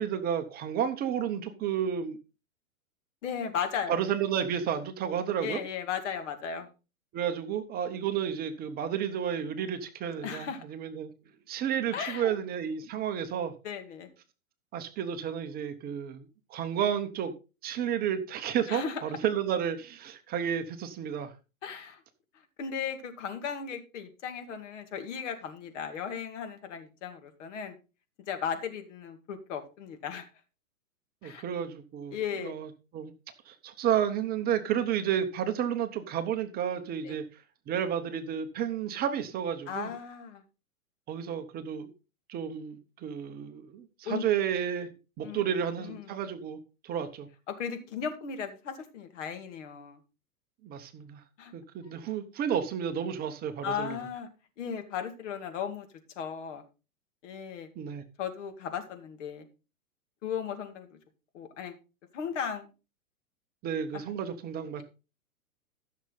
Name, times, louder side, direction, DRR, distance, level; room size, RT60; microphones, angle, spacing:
voice 1, 0.0-2.2 3.9-5.6 7.1-11.1 11.5-13.5 14.7-17.3 17.6-21.3 31.2-33.1 33.4-37.4 37.7-39.9 41.1-41.9 42.3-44.9 45.2-46.6 46.8-47.3 50.6-51.2 51.5-54.0 57.8-58.0 63.6-64.8, right 9 dB, 20° right, 8 dB, 0.8 m, -31 dB
voice 2, 3.2-4.0 5.4-6.7 10.2-10.6 11.9-12.3 13.6-14.1 18.7-19.0 21.6-22.0 22.6-27.8 28.3-30.2 31.2-31.4 32.1-32.5 37.0-37.2 39.7-40.4 44.0-44.2 45.2-45.5 45.8-46.1 47.5-50.0 51.4-51.5 53.6-54.3 54.6-55.9 56.2-56.6 57.2-57.7 58.2-59.5 60.2-61.0 61.3-61.8 62.1-62.7 63.9-64.1, left 7 dB, 55° left, 7 dB, 2.3 m, -36 dB
14.5 x 6.5 x 3.9 m, 0.30 s
hypercardioid pair, 125°, 43 cm